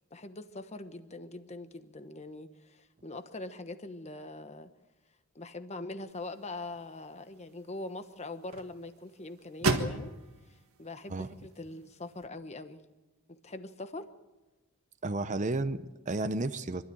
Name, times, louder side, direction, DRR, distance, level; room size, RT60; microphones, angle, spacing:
voice 1, 0.1-4.7 5.3-10.1 10.5-12.8 13.3-14.1, left 2 dB, 30° left, 9 dB, 1.2 m, -42 dB
sound 1, 6.1-12.3, right 3 dB, 80° right, 1.7 m, -38 dB
voice 2, 15.0-16.8, right 2 dB, 35° right, 11 dB, 0.7 m, -32 dB
24.5 x 13.0 x 8.8 m, 1.1 s
head